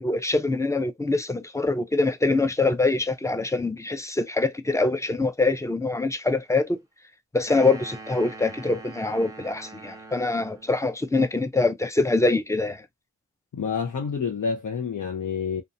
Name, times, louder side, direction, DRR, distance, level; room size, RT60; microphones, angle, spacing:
voice 1, 0.0-6.8 7.3-12.8, left 3 dB, 10° left, 0.4 m, -24 dB
sound 1, 7.5-10.8, right 3 dB, 10° right, 0.7 m, -43 dB
voice 2, 13.5-15.6, left 6 dB, 80° left, 0.6 m, -28 dB
2.7 x 2.2 x 2.4 m
wide cardioid pair, 65°, 31 cm